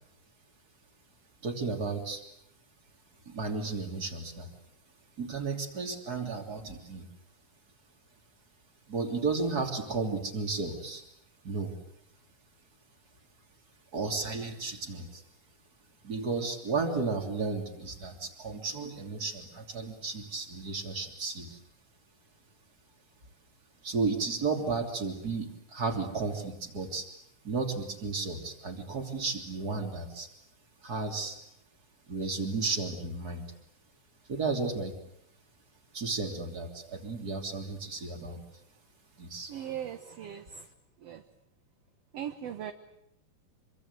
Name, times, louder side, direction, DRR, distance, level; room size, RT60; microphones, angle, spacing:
voice 1, 1.4-2.2 3.2-4.5 5.2-7.1 8.9-11.0 11.4-11.8 13.9-15.2 16.0-21.6 23.8-27.1 27.4-30.3 30.8-31.4 32.1-33.5 34.3-34.9 35.9-38.4 39.2-39.5, right 4 dB, 30° right, 4 dB, 3.4 m, -33 dB
voice 2, 39.5-40.7 41.0-41.2 42.1-42.7, right 9 dB, 60° right, 7 dB, 1.9 m, -39 dB
26.0 x 24.0 x 8.3 m, 0.76 s
omnidirectional pair, 3.8 m